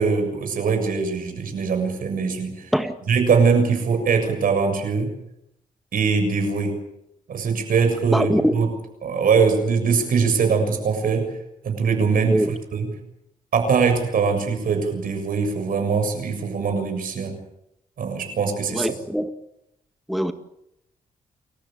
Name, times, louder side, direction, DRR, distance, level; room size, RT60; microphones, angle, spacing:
voice 1, 0.0-2.7 3.1-5.1 5.9-6.8 7.3-8.7 9.0-11.3 11.6-12.4 12.7-12.9 13.5-17.4 18.0-18.9, right 5 dB, 75° right, 5 dB, 7.1 m, -22 dB
voice 2, 8.1-8.6 12.3-12.5 18.7-19.3 20.1-20.3, equal, ahead, 7 dB, 1.8 m, -22 dB
29.0 x 14.5 x 9.1 m, 0.82 s
cardioid pair, 75°, 15 cm